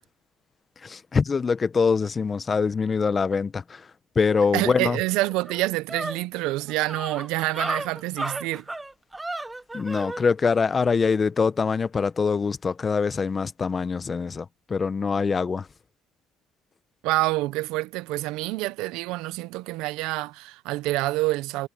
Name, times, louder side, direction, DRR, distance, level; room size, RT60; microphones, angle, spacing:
voice 1, 0.8-5.0 9.7-15.7, left 5 dB, 30° left, 1.0 m, -24 dB
voice 2, 4.5-8.7 17.0-21.7, right 19 dB, 80° right, 0.8 m, -27 dB
sound 1, 4.8-4.9 5.2-10.2, right 2 dB, 10° right, 1.1 m, -33 dB
supercardioid pair, 85°, 0 cm